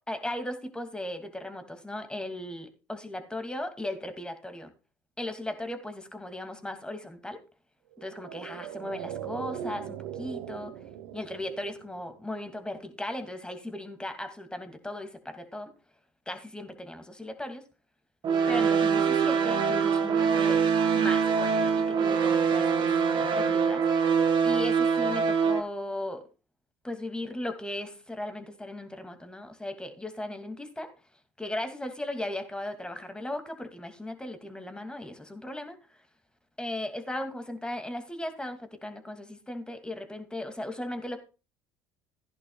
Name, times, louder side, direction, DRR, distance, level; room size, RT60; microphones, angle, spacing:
voice 1, 0.1-4.7 5.2-7.4 8.0-10.7 11.1-15.7 16.3-17.6 18.5-20.6 20.9-23.8 24.4-26.3 26.8-30.9 31.4-36.0 36.6-41.2, left 1 dB, 10° left, 7 dB, 2.5 m, -37 dB
sound 1, 7.9-12.5 12.8-12.9, right 9 dB, 80° right, 1.3 m, -40 dB
sound 2, 18.2-25.6, right 6 dB, 50° right, 1.8 m, -24 dB
15.5 x 10.5 x 2.4 m, 0.32 s
supercardioid pair, 75°, 10 cm